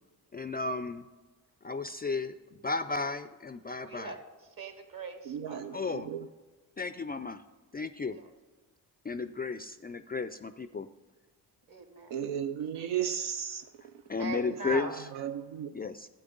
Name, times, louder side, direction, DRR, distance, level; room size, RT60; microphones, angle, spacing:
voice 1, 0.3-1.1 1.6-4.2 5.7-6.1 6.8-7.4 7.7-8.2 9.0-10.9 14.1-15.1 15.7-16.1, left 4 dB, 25° left, 11 dB, 0.3 m, -34 dB
voice 2, 3.8-4.2 4.6-5.8 8.1-8.3 11.7-12.2 14.2-15.0, right 3 dB, 50° right, 6 dB, 1.7 m, -40 dB
voice 3, 5.3-6.3 12.1-13.9 14.7-14.8 15.1-15.7, right 9 dB, 80° right, 8 dB, 0.5 m, -35 dB
11.5 x 8.2 x 3.8 m, 1.3 s
supercardioid pair, 50°, 43 cm